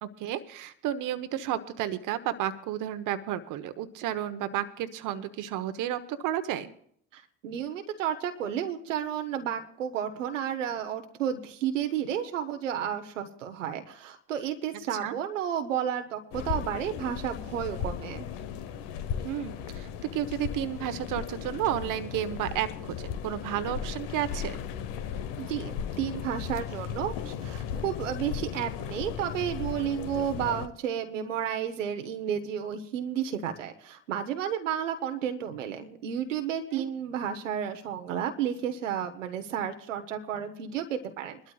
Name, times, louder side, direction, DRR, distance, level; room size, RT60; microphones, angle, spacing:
voice 1, 0.0-6.7 14.9-15.1 19.2-24.6 36.7-36.9, right 11 dB, 55° right, 11 dB, 1.0 m, -32 dB
voice 2, 7.1-18.3 25.4-41.5, right 9 dB, 85° right, 6 dB, 1.0 m, -32 dB
sound 1, 16.3-30.7, left 8 dB, 65° left, 1.0 m, -36 dB
23.5 x 12.0 x 2.4 m, 0.64 s
hypercardioid pair, 60°, 37 cm